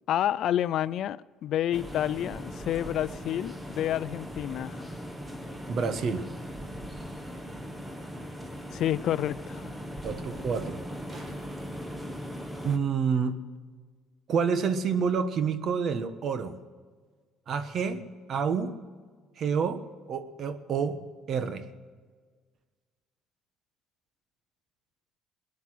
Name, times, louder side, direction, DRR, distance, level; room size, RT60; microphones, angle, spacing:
voice 1, 0.1-4.9 8.7-9.7, left 11 dB, 65° left, 0.4 m, -29 dB
sound 1, 1.7-12.8, equal, 10° right, 1.6 m, -39 dB
voice 2, 5.7-6.3 10.0-10.8 12.6-13.4 14.3-16.5 17.5-18.0 18.3-18.7 19.4-19.8 20.1-21.0 21.3-21.6, right 6 dB, 55° right, 1.3 m, -28 dB
sound 2, 11.1-12.9 15.7-15.8, right 2 dB, 30° right, 2.2 m, -51 dB
19.0 x 10.5 x 6.2 m
cardioid pair, 100°, 0 cm